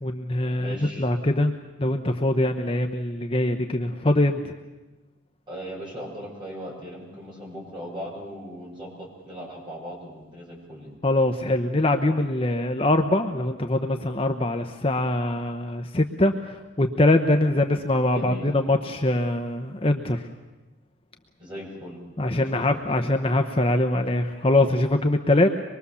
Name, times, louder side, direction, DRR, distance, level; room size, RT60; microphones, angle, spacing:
voice 1, 0.0-1.5 1.8-4.5 11.0-20.3 22.2-25.5, left 1 dB, 25° left, 5 dB, 0.9 m, -23 dB
voice 2, 0.6-1.1 5.5-10.9 18.1-18.5 21.4-22.0 22.3-22.8, equal, 20° right, -3 dB, 7.3 m, -38 dB
24.5 x 22.0 x 7.1 m, 1.1 s
head